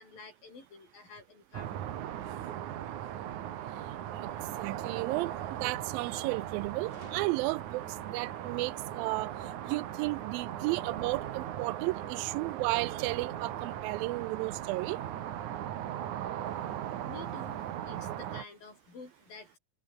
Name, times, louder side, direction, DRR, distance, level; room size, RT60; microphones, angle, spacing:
voice 1, 0.0-1.9 16.4-19.6, left 4 dB, 75° left, 9.1 m, -50 dB
sound 1, 1.5-18.4, right 11 dB, 60° right, 2.7 m, -38 dB
voice 2, 4.0-5.3 5.6-9.3 9.6-15.0, right 22 dB, 85° right, 2.3 m, -33 dB
Gunshot gunfire, 6.9-8.1, right 1 dB, 15° right, 6.5 m, -54 dB
omnidirectional pair, 4.1 m